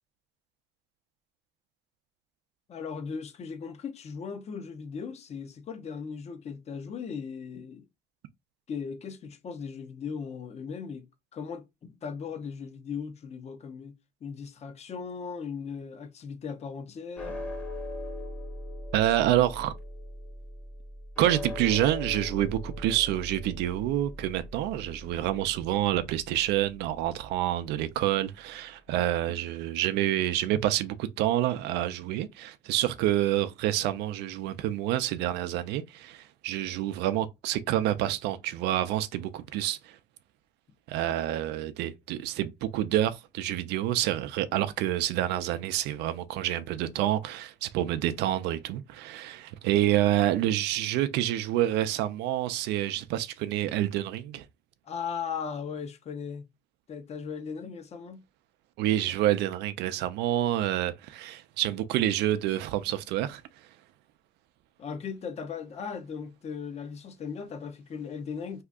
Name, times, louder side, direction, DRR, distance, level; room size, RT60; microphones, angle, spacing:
voice 1, 2.7-7.8 8.7-11.1 11.3-17.4 54.8-56.5 56.9-58.2 64.8-68.6, left 6 dB, 40° left, 0.6 m, -38 dB
sound 1, 17.2-27.6, left 1 dB, 10° left, 0.8 m, -40 dB
voice 2, 18.9-19.7 21.2-40.0 40.9-54.4 58.8-63.4, right 13 dB, 85° right, 0.4 m, -28 dB
2.8 x 2.4 x 3.4 m
cardioid pair, 110°, 17 cm